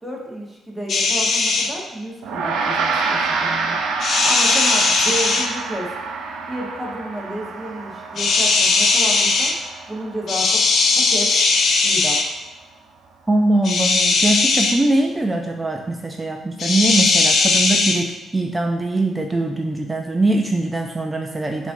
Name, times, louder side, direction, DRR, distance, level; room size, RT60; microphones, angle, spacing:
voice 1, 0.0-3.8 4.2-5.9 6.5-9.5 9.9-11.3 11.8-12.2, right 1 dB, ahead, -3 dB, 1.0 m, -31 dB
sound 1, 0.9-1.7 4.0-5.5 8.2-9.5 10.3-12.2 13.6-14.8 16.6-18.0, left 3 dB, 55° left, 0.5 m, -18 dB
Gong, 2.2-11.9, right 4 dB, 90° right, 0.4 m, -27 dB
voice 2, 13.3-21.7, right 2 dB, 20° right, 3 dB, 0.3 m, -22 dB
6.2 x 2.6 x 2.6 m, 1.0 s
cardioid pair, 90°, 0 cm